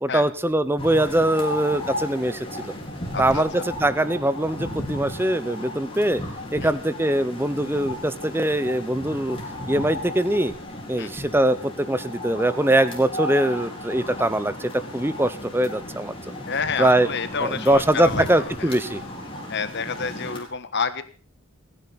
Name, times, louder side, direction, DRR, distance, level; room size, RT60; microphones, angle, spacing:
voice 1, 0.0-2.7 3.2-6.2 6.5-9.4 9.7-10.5 10.9-16.4 16.8-17.1 17.4-19.0, right 1 dB, 10° right, 14 dB, 0.8 m, -22 dB
sound 1, 0.8-20.4, left 1 dB, 25° left, 4.3 m, -35 dB
voice 2, 3.1-3.7 6.6-6.7 11.0-11.1 16.5-18.7 19.5-21.0, left 5 dB, 50° left, 12 dB, 1.4 m, -29 dB
28.5 x 9.9 x 4.2 m, 0.38 s
head